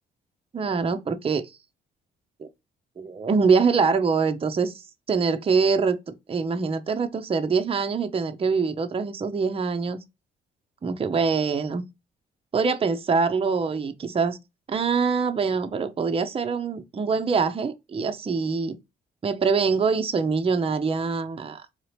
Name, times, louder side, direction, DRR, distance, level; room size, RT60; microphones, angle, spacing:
voice 1, 0.5-1.5 2.4-2.5 3.0-4.7 5.1-6.0 6.3-10.0 10.8-11.8 12.5-14.4 14.7-18.8 19.2-21.6, right 5 dB, 30° right, 0.6 m, -24 dB
4.0 x 2.8 x 3.1 m
supercardioid pair, 60°, 19 cm